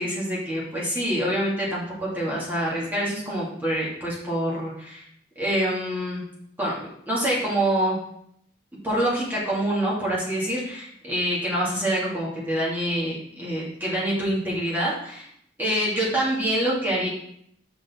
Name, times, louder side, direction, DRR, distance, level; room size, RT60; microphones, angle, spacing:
voice 1, 0.0-5.0 5.4-6.2 6.6-8.0 8.8-15.3 15.6-17.1, right 1 dB, 10° right, -7 dB, 1.9 m, -26 dB
5.9 x 5.2 x 3.5 m, 0.70 s
head